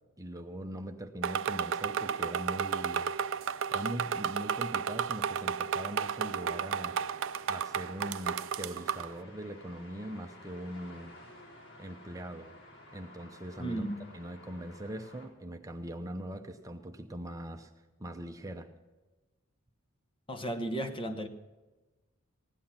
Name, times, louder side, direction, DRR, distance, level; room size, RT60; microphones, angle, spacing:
voice 1, 0.2-3.4 3.7-7.0 7.5-11.1 11.8-12.5 12.9-17.7 18.0-18.7, right 1 dB, 15° right, 5 dB, 0.8 m, -41 dB
sound 1, 1.2-15.3, left 1 dB, 65° left, 3.5 m, -55 dB
sound 2, 1.2-9.1, right 7 dB, 65° right, 0.4 m, -33 dB
voice 2, 13.6-14.0 20.3-21.3, right 1 dB, 25° left, 8 dB, 1.1 m, -34 dB
16.5 x 11.0 x 5.8 m, 1.2 s
head